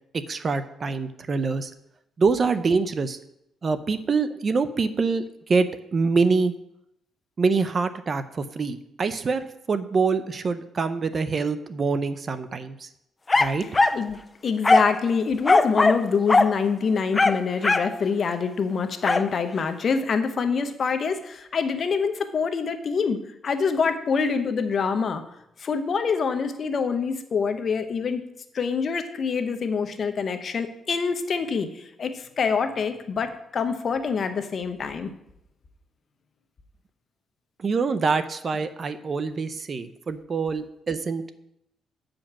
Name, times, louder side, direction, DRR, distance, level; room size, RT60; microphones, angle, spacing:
voice 1, 0.3-1.7 2.2-3.2 3.6-5.2 5.5-6.5 7.4-12.9 13.4-13.6 37.6-41.3, right 4 dB, 40° right, 12 dB, 0.6 m, -25 dB
sound 1, 13.3-14.0 14.6-15.0 15.4-16.0 16.3-16.5 17.1-17.9 19.0-19.3, left 3 dB, 25° left, 0.4 m, -19 dB
voice 2, 14.4-25.2 25.6-28.2 28.5-35.1, left 5 dB, 50° left, 8 dB, 0.9 m, -25 dB
8.5 x 5.2 x 6.0 m, 0.80 s
cardioid pair, 90°, 0 cm